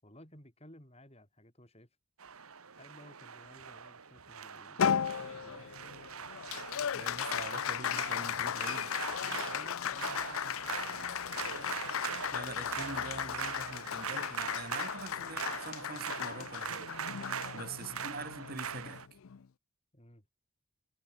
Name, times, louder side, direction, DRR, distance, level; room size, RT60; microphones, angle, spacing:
voice 1, 0.0-1.9 2.8-6.0 9.5-11.5 17.8-18.1 19.9-20.3, left 1 dB, 30° left, 7.2 m, -57 dB
sound 1, 2.2-19.1, right 7 dB, 85° right, 1.6 m, -42 dB
Applause, 4.8-19.4, left 8 dB, 75° left, 0.5 m, -36 dB
voice 2, 6.9-8.9 12.3-16.9 17.5-19.0, right 3 dB, 45° right, 6.0 m, -44 dB
head